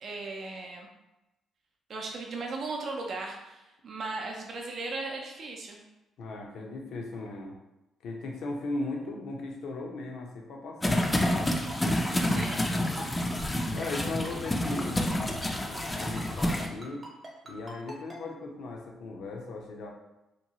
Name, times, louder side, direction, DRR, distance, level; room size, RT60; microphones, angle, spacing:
voice 1, 0.0-0.9 1.9-5.8 12.2-12.7, right 3 dB, 55° right, 0 dB, 0.4 m, -37 dB
voice 2, 6.2-7.6 8.0-11.4 12.9-13.2 13.7-15.1 15.6-17.0 17.4-19.9, left 2 dB, 75° left, 0 dB, 0.6 m, -37 dB
sound 1, 10.8-16.7, left 1 dB, 15° left, 0.3 m, -28 dB
Ringtone, 11.5-18.2, right 2 dB, 35° right, 0.8 m, -43 dB
2.8 x 2.2 x 2.8 m, 0.94 s
cardioid pair, 90°, 0 cm